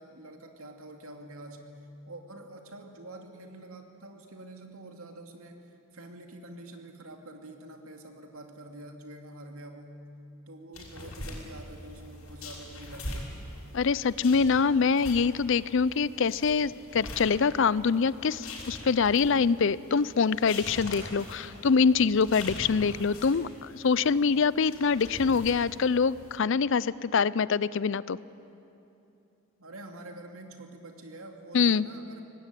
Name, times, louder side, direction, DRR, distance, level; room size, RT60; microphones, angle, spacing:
voice 1, 0.0-1.7 2.1-10.1 10.5-13.4 29.6-32.2, right 1 dB, 80° right, 4 dB, 2.5 m, -46 dB
sound 1, 10.7-26.4, left 1 dB, 85° left, 5.8 m, -43 dB
voice 2, 13.7-28.2 31.5-31.8, left 5 dB, 60° left, 19 dB, 0.5 m, -25 dB
23.5 x 18.5 x 9.1 m, 2.8 s
head